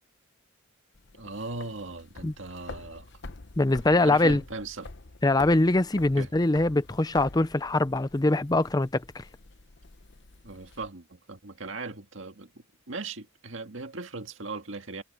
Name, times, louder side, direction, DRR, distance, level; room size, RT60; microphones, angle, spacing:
sound 1, 0.9-10.9, left 2 dB, 55° left, 1.0 m, -47 dB
voice 1, 1.2-3.1 4.0-4.9 6.2-6.3 10.4-12.5 12.9-15.0, right 3 dB, 65° right, 1.9 m, -38 dB
voice 2, 3.6-4.4 5.2-9.2, left 2 dB, 20° left, 0.6 m, -23 dB
head